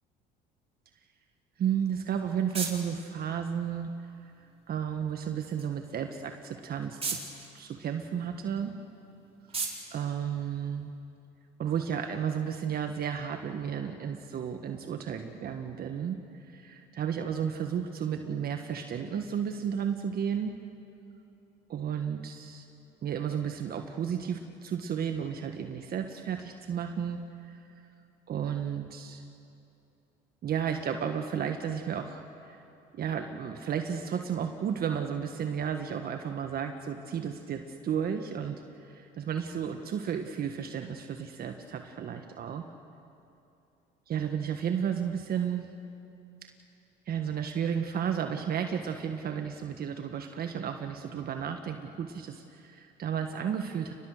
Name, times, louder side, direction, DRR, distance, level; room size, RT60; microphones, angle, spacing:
voice 1, 1.6-3.9 4.7-7.2 7.5-8.7 9.9-10.9 11.6-20.5 21.7-22.6 23.0-27.6 28.3-29.2 30.4-32.6 32.9-42.6 44.1-45.7 47.1-53.9, right 8 dB, 50° right, 5 dB, 1.6 m, -33 dB
sound 1, 1.7-11.2, right 4 dB, 30° right, 4.2 m, -42 dB
29.5 x 20.0 x 6.6 m, 2.7 s
supercardioid pair, 80°, 19 cm